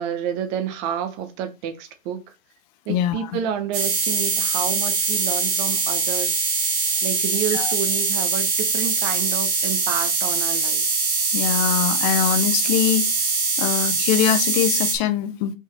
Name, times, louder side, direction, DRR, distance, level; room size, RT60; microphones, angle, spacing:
voice 1, 0.0-2.2 2.9-6.5 7.0-10.8, right 9 dB, 35° right, 1.3 m, -29 dB
voice 2, 2.9-3.3 7.5-7.7 11.3-13.1 13.6-15.5, left 10 dB, 30° left, 0.8 m, -22 dB
sound 1, 3.7-14.9, right 4 dB, 5° right, 0.3 m, -22 dB
5.4 x 3.9 x 4.9 m
hypercardioid pair, 140°, 40 cm